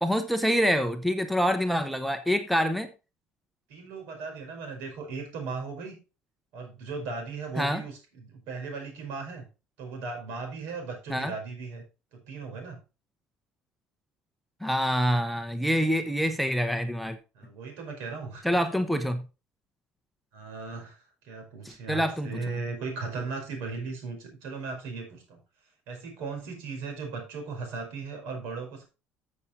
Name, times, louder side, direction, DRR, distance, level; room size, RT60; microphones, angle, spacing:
voice 1, 0.0-2.9 7.6-7.8 11.1-11.3 14.6-17.2 18.4-19.2 21.6-22.3, equal, ahead, 9 dB, 0.7 m, -26 dB
voice 2, 3.7-6.0 6.5-9.5 9.8-11.8 12.1-12.8 17.4-18.5 20.3-25.4 25.9-28.8, right 4 dB, 70° right, 4 dB, 5.2 m, -37 dB
13.5 x 7.1 x 2.7 m, 0.30 s
cardioid pair, 170°, 4 cm